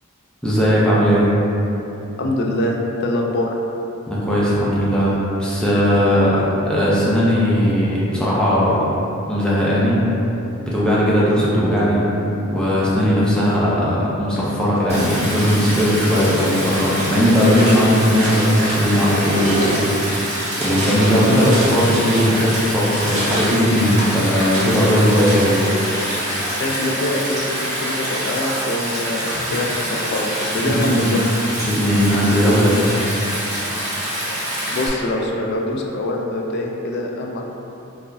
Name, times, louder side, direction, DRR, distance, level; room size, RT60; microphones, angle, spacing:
voice 1, 0.4-1.3 4.1-8.9 9.3-10.1 10.6-12.1 12.5-25.6 29.3-29.4 30.8-31.2 31.6-32.8, equal, 5° left, -9 dB, 0.6 m, -18 dB
voice 2, 2.2-3.5 26.5-31.2 34.7-37.4, left 1 dB, 50° left, 0 dB, 0.3 m, -24 dB
Stream, 14.9-34.9, equal, 35° right, 1.4 m, -26 dB
sound 1, 16.6-22.5 22.8-26.3, right 1 dB, 65° right, 0.9 m, -28 dB
4.4 x 2.1 x 2.6 m, 3.0 s
head